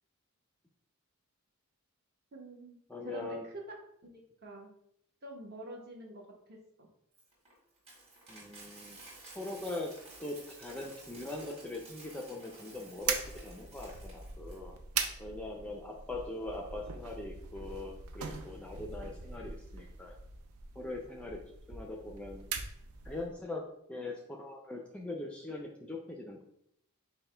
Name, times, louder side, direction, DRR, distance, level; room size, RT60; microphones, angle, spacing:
voice 1, 2.3-2.8 3.0-3.6 4.0-4.7 5.2-6.2 6.5-6.9, right 2 dB, 45° right, 0 dB, 1.0 m, -47 dB
voice 2, 2.9-3.4 8.3-9.0 9.3-9.9 10.2-14.7 15.2-20.2 20.8-21.4 21.7-22.4 23.0-23.6 23.9-26.4, left 2 dB, 5° left, 0 dB, 0.4 m, -41 dB
Coin (dropping), 7.1-14.6, right 2 dB, 30° right, 1.7 m, -53 dB
sound 1, 13.0-23.3, right 6 dB, 75° right, 0.5 m, -41 dB
5.6 x 2.1 x 4.3 m, 0.74 s
head